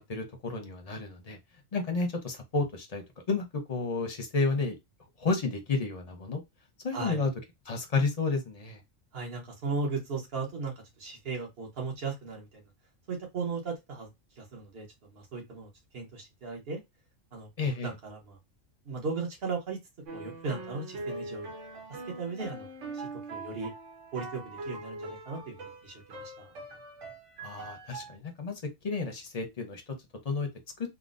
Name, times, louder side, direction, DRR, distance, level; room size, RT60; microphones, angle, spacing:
voice 1, 0.0-1.4 1.7-4.8 5.2-6.4 6.8-7.3 7.7-8.8 17.6-17.9 27.4-29.9 30.2-30.5, left 4 dB, 40° left, 0.7 m, -31 dB
voice 2, 9.1-10.7 11.0-12.5 13.1-14.1 14.4-16.8 17.3-17.5 17.8-18.4 18.8-19.8 20.1-21.5 22.2-22.7 22.9-23.7 24.1-26.5, right 4 dB, 50° right, 1.3 m, -36 dB
sound 1, 20.1-28.2, right 2 dB, 75° right, 1.2 m, -42 dB
3.7 x 2.1 x 2.5 m
omnidirectional pair, 1.3 m